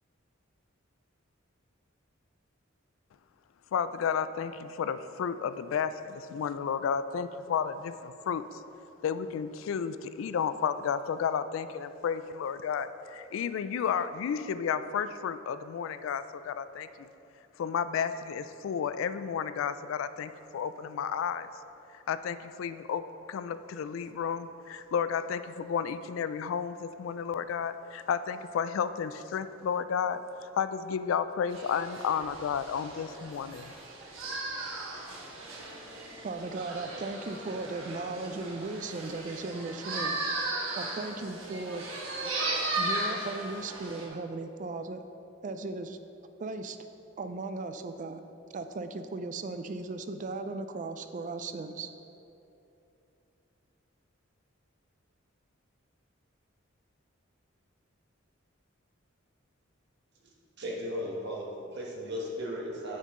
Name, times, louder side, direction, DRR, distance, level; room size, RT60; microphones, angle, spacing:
voice 1, 3.7-8.6 9.0-17.1 17.6-21.5 22.1-33.7, left 7 dB, 75° left, 13 dB, 0.3 m, -32 dB
sound 1, 31.5-44.1, right 2 dB, 90° right, 1.3 m, -36 dB
voice 2, 36.2-40.2 40.8-41.8 42.8-45.0 45.4-46.0 46.4-46.8 47.2-48.2 48.5-51.9, right 3 dB, 40° right, 9 dB, 0.4 m, -37 dB
voice 3, 60.2-63.0, equal, 60° right, -2 dB, 1.3 m, -36 dB
9.5 x 5.5 x 3.7 m, 2.9 s
head